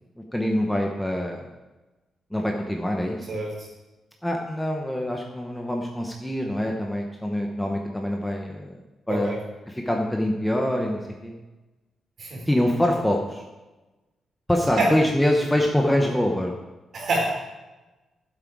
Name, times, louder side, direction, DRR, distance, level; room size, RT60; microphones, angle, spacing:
voice 1, 0.2-1.5 2.3-3.3 4.2-8.7 9.1-9.4 9.8-11.4 12.5-13.4 14.5-16.5, left 1 dB, 5° left, 1 dB, 0.9 m, -25 dB
voice 2, 3.3-3.7 9.1-9.4 12.2-12.4 14.7-14.9 16.9-17.3, right 2 dB, 45° right, -2 dB, 3.9 m, -26 dB
13.0 x 7.8 x 4.8 m, 1.1 s
wide cardioid pair, 180°, 0 cm